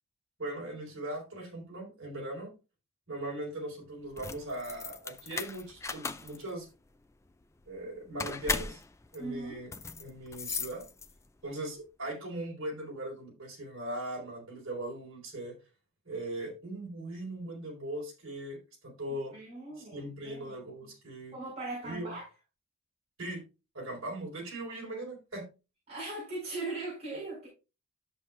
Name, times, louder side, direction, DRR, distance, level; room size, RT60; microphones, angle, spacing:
voice 1, 0.4-2.5 3.1-6.7 7.7-8.8 9.1-9.7 10.0-10.8 11.4-15.5 16.1-19.3 19.8-21.4 21.8-22.1 23.2-23.4 23.7-25.5, right 1 dB, 60° right, 4.0 m, -39 dB
sound 1, 4.0-11.4, left 4 dB, 15° left, 0.3 m, -38 dB
voice 2, 9.2-9.6 19.1-20.6 21.3-22.3 25.9-27.5, right 2 dB, 30° right, 4.5 m, -39 dB
11.0 x 6.9 x 2.4 m
head